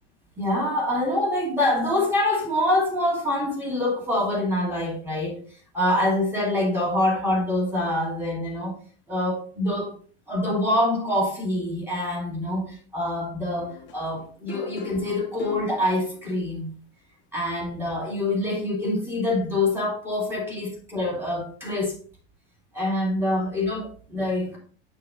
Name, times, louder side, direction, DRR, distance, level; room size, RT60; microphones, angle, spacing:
voice 1, 0.4-8.8 9.1-9.9 10.3-16.7 17.3-21.9 22.7-24.6, left 1 dB, 5° right, -3 dB, 2.3 m, -25 dB
sound 1, 13.6-16.5 18.0-18.1, left 7 dB, 35° left, 1.3 m, -42 dB
8.0 x 4.8 x 3.8 m, 0.42 s
supercardioid pair, 160°, 35 cm